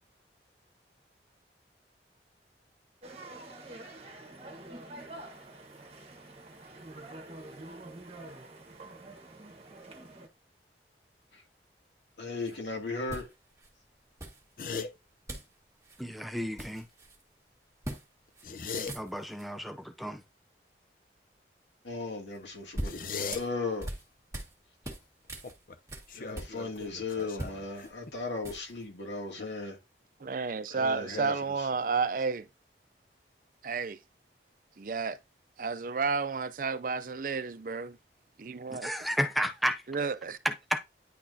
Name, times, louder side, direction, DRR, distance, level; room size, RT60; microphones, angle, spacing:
sound 1, 3.0-10.3, right 2 dB, 35° right, 1.4 m, -47 dB
voice 1, 12.2-13.3 21.8-22.9 23.3-23.9 26.1-29.8 30.7-31.7, left 3 dB, 90° left, 2.5 m, -36 dB
sound 2, 12.4-12.6 13.1-13.7 14.2-14.8 15.3-15.6 15.8-16.0 16.3-17.2 17.8-18.1 18.4-18.5 18.8-19.5 22.3-24.6 24.8-26.9 27.2-28.8, right 1 dB, 15° right, 1.7 m, -41 dB
sound 3, 14.6-14.9 18.3-18.9 22.8-23.4 25.4-25.8 26.1-28.1, left 5 dB, 50° left, 0.7 m, -38 dB
voice 2, 16.0-16.9 18.9-20.2 38.7-39.8 40.4-40.8, equal, ahead, 0.5 m, -32 dB
voice 3, 30.2-32.5 33.6-34.0 34.8-35.2 35.6-38.0 38.4-38.9 39.9-40.4, right 4 dB, 50° right, 0.5 m, -31 dB
10.0 x 4.1 x 2.8 m
head